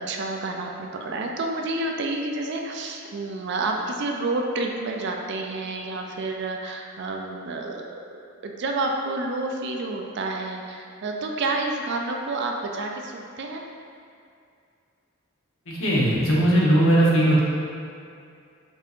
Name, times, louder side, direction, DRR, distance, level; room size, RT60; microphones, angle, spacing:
voice 1, 0.0-7.8 8.4-13.6, right 2 dB, 55° right, 2 dB, 0.4 m, -29 dB
voice 2, 15.7-17.4, right 1 dB, 75° left, -6 dB, 0.9 m, -19 dB
5.3 x 2.8 x 2.5 m, 2.4 s
head